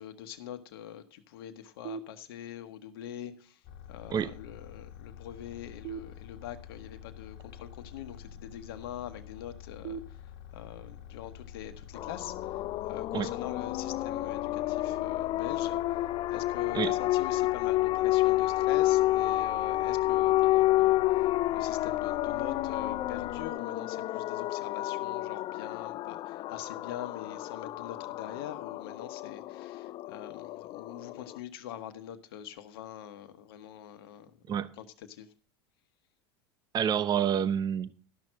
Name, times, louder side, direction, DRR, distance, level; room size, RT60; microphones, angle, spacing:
voice 1, 0.0-3.6 3.9-35.3, left 10 dB, 75° left, 1.2 m, -44 dB
sound 1, 1.8-2.8 5.8-6.8 9.8-10.8, right 6 dB, 65° right, 1.1 m, -43 dB
sound 2, 3.6-23.5, left 10 dB, 60° left, 1.4 m, -48 dB
sound 3, 11.9-31.4, left 16 dB, 40° left, 0.4 m, -30 dB
voice 2, 36.7-37.9, right 8 dB, 35° right, 0.7 m, -28 dB
12.5 x 6.1 x 6.3 m
hypercardioid pair, 100°, 13 cm